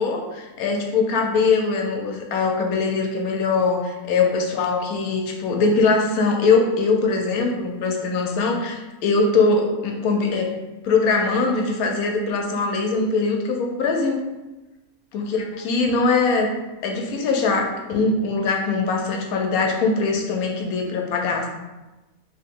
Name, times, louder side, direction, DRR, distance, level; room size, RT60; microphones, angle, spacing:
voice 1, 0.0-10.5 10.8-14.2 15.1-16.5 16.8-21.5, left 4 dB, 90° left, 2 dB, 1.1 m, -22 dB
2.9 x 2.8 x 3.6 m, 1.1 s
omnidirectional pair, 1.5 m